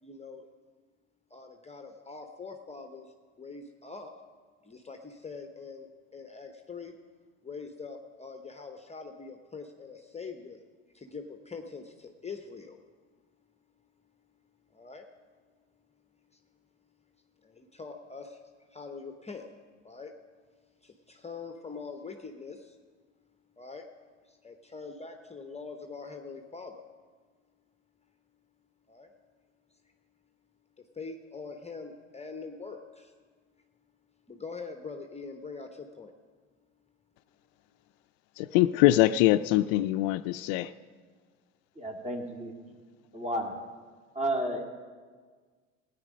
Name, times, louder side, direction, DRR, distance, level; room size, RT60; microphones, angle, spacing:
voice 1, 0.0-0.5 1.3-4.1 4.6-7.0 7.4-10.6 10.9-12.8 14.7-15.1 16.3-16.4 17.4-19.5 19.8-20.1 20.8-22.8 23.6-23.9 24.2-26.8 28.9-29.1 30.8-33.1 34.3-36.1, left 4 dB, 15° left, 5 dB, 0.9 m, -43 dB
voice 2, 38.4-40.7, left 15 dB, 60° left, 13 dB, 0.5 m, -23 dB
voice 3, 41.8-42.6 43.1-43.6 44.1-44.8, right 1 dB, 15° right, 3 dB, 2.2 m, -32 dB
16.5 x 9.3 x 5.2 m, 1.6 s
hypercardioid pair, 65°, 40 cm